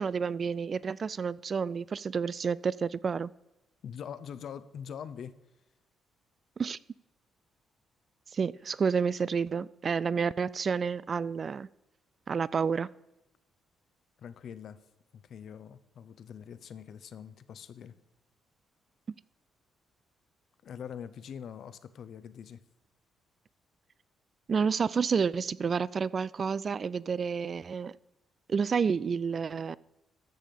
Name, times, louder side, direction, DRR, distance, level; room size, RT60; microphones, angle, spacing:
voice 1, 0.0-3.3 6.6-6.8 8.3-11.7 12.3-12.9 24.5-28.0 28.5-29.8, right 6 dB, 45° right, 0.3 m, -30 dB
voice 2, 3.8-5.3 14.2-14.8 15.1-18.0 20.6-22.6, left 8 dB, 65° left, 0.7 m, -43 dB
13.5 x 6.6 x 5.3 m
cardioid pair, 90°, 0 cm